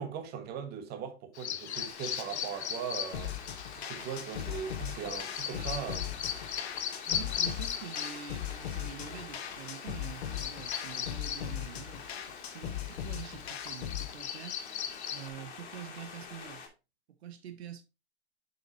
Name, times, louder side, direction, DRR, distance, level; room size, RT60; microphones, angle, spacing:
voice 1, 0.0-3.3 3.8-6.5, right 7 dB, 30° right, 1.3 m, -39 dB
Bird vocalization bird call bird song, 1.3-15.3, left 8 dB, 85° left, 1.0 m, -39 dB
sound 1, 1.7-16.7, left 5 dB, 25° left, 2.3 m, -47 dB
sound 2, 3.1-14.1, left 11 dB, 70° left, 1.4 m, -39 dB
voice 2, 5.5-5.9 7.1-12.1 12.5-14.6 15.1-16.6 17.2-17.8, right 9 dB, 70° right, 1.0 m, -46 dB
7.2 x 5.8 x 3.0 m
hypercardioid pair, 130°, 33 cm